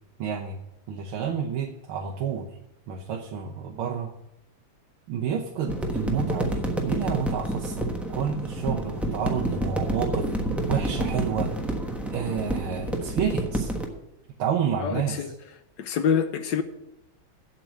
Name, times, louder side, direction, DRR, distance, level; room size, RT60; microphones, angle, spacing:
voice 1, 0.2-0.6 0.9-2.5 2.9-4.1 5.1-10.3 10.7-11.5 12.1-13.7 14.4-15.3, right 7 dB, 85° right, 1.8 m, -29 dB
sound 1, 5.7-13.9, right 1 dB, ahead, 0.8 m, -29 dB
voice 2, 14.8-15.3 15.8-16.6, left 7 dB, 65° left, 1.3 m, -26 dB
8.2 x 7.5 x 7.4 m
omnidirectional pair, 2.2 m